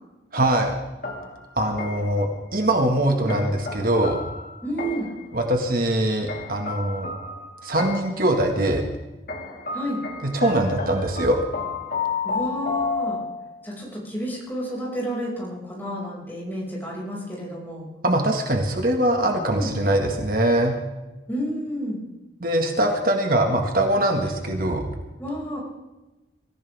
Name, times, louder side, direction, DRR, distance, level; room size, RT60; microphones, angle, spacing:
voice 1, 0.3-0.8 1.6-4.2 5.3-7.1 7.6-8.8 10.2-11.4 18.0-20.8 22.4-24.8, right 1 dB, 50° right, 3 dB, 1.8 m, -22 dB
sound 1, 1.0-2.2 3.3-5.3 6.3-8.3 9.3-13.6, left 4 dB, 50° left, 2.3 m, -32 dB
voice 2, 4.6-5.1 9.7-10.0 12.2-13.2 13.6-17.9 19.5-19.7 21.3-22.0 25.2-25.6, equal, 10° left, -4 dB, 6.0 m, -30 dB
24.0 x 15.5 x 3.6 m, 1.1 s
head